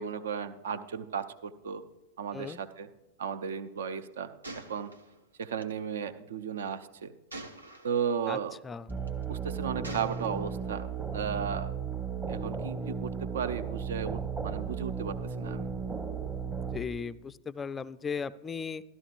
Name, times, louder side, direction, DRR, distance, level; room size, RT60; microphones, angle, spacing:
voice 1, 0.0-1.8 2.2-2.9 3.2-4.9 5.4-7.1 7.8-8.6 9.3-11.7 12.3-15.7, right 7 dB, 60° right, 12 dB, 0.6 m, -35 dB
Gunshot gunfire, 4.4-5.7 7.3-8.1 8.9-9.2 9.8-10.6, right 2 dB, 80° right, 0.9 m, -45 dB
sound 1, 8.9-16.8, right 6 dB, 20° right, 1.0 m, -35 dB
voice 2, 16.7-18.8, left 5 dB, 15° left, 15 dB, 0.4 m, -36 dB
13.5 x 12.5 x 2.5 m, 1.0 s
figure-of-eight pair, 90°, 0 cm